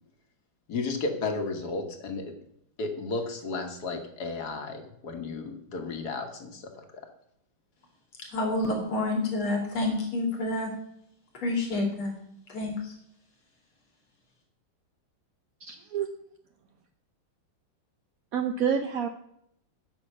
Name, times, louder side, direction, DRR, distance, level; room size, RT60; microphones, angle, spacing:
voice 1, 0.7-2.3 2.8-6.9, left 3 dB, 50° left, 5 dB, 1.9 m, -33 dB
voice 2, 8.3-10.7 11.3-12.2 12.5-12.9, left 2 dB, 80° left, 1 dB, 3.5 m, -28 dB
voice 3, 15.6-16.1 18.3-19.1, right 7 dB, 70° right, 7 dB, 0.8 m, -28 dB
9.9 x 6.3 x 7.9 m, 0.74 s
omnidirectional pair, 2.3 m